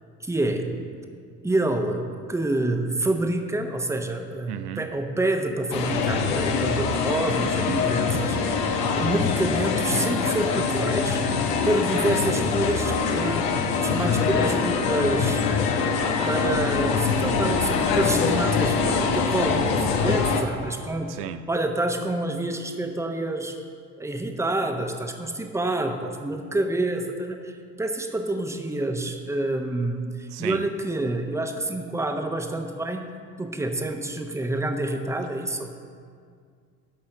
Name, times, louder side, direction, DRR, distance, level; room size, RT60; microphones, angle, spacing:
voice 1, 0.2-0.8 1.4-8.7 9.0-15.4 16.3-21.1 21.5-23.6 24.0-33.0 33.4-35.7, right 2 dB, 5° right, 5 dB, 1.0 m, -27 dB
voice 2, 4.5-4.9 21.1-21.4 30.3-30.6, right 12 dB, 70° right, 10 dB, 0.6 m, -34 dB
sound 1, 5.7-20.4, left 5 dB, 75° left, 1.1 m, -24 dB
12.0 x 5.7 x 6.6 m, 2.1 s
figure-of-eight pair, 65°, 49 cm